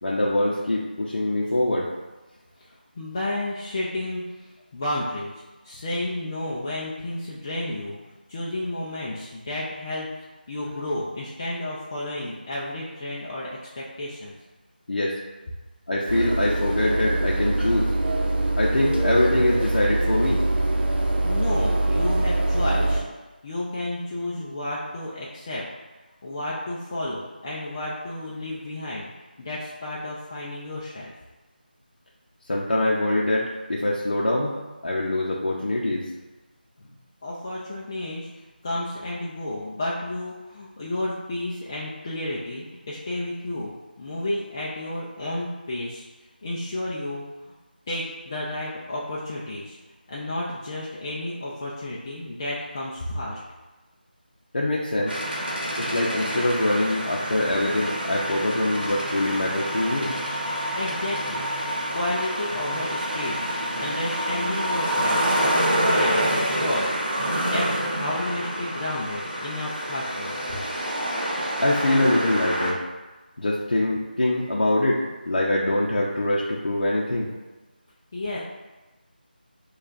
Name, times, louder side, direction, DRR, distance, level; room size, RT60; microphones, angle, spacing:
voice 1, 0.0-1.9 14.9-15.2 15.9-17.9 18.6-20.4 32.5-34.6 34.8-36.1 54.5-55.2 55.8-60.1 71.6-72.8 73.4-77.3, left 1 dB, 65° left, -5 dB, 0.6 m, -24 dB
voice 2, 3.0-5.3 5.6-8.0 8.3-10.1 10.5-14.3 21.2-23.0 23.4-25.6 26.2-29.0 29.4-31.1 37.2-38.3 38.6-46.0 46.4-47.3 47.9-49.8 50.1-53.4 60.8-61.4 61.9-63.4 63.8-70.6 78.1-78.4, left 1 dB, 20° left, -7 dB, 0.3 m, -31 dB
sound 1, 16.1-23.0, right 2 dB, 90° right, 0.7 m, -23 dB
sound 2, 55.1-72.7, equal, 70° right, 1.0 m, -27 dB
6.1 x 2.3 x 2.5 m, 1.2 s
figure-of-eight pair, 165°, 5 cm